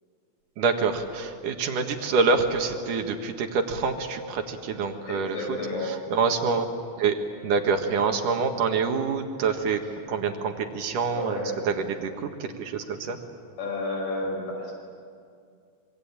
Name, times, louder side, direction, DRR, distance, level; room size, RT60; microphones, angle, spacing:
voice 1, 0.6-5.6 5.9-6.7 7.0-7.2 7.4-9.8 10.1-11.4 11.6-13.2, right 5 dB, 65° right, 5 dB, 3.2 m, -26 dB
voice 2, 5.1-6.0 11.1-11.6 13.6-14.7, left 2 dB, 70° left, 0 dB, 7.4 m, -31 dB
26.0 x 24.0 x 8.9 m, 2.3 s
omnidirectional pair, 4.1 m